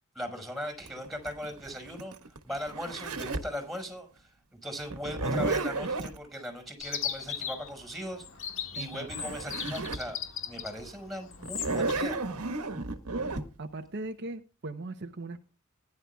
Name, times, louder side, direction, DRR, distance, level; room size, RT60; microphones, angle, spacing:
voice 1, 0.2-2.1 2.5-10.2 10.4-12.2, equal, ahead, 5 dB, 5.2 m, -39 dB
Zipper (clothing), 0.9-3.6 4.9-6.2 8.8-8.9 9.1-10.1 10.6-10.7 11.4-13.4, right 3 dB, 85° right, 1.5 m, -32 dB
Chirp tweet, 6.8-11.9, left 8 dB, 60° left, 1.8 m, -38 dB
voice 2, 8.7-9.1 13.6-15.5, right 2 dB, 50° right, 7 dB, 0.8 m, -39 dB
20.0 x 11.0 x 2.3 m, 0.33 s
head